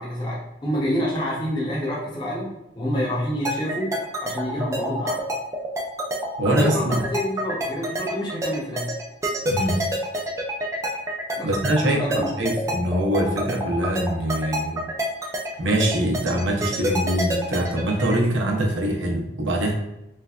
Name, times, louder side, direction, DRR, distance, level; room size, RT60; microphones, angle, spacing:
voice 1, 0.0-2.5 2.8-3.9 4.2-5.2 6.5-8.9 11.4-11.5 11.8-12.3, equal, 25° left, -4 dB, 0.8 m, -27 dB
sound 1, 3.5-18.2, right 1 dB, 15° right, 0.3 m, -27 dB
voice 2, 6.4-6.9 9.4-9.9 11.4-12.0 12.4-14.8 15.6-19.7, right 1 dB, 80° right, 1 dB, 0.7 m, -23 dB
3.2 x 3.2 x 2.4 m, 0.91 s
head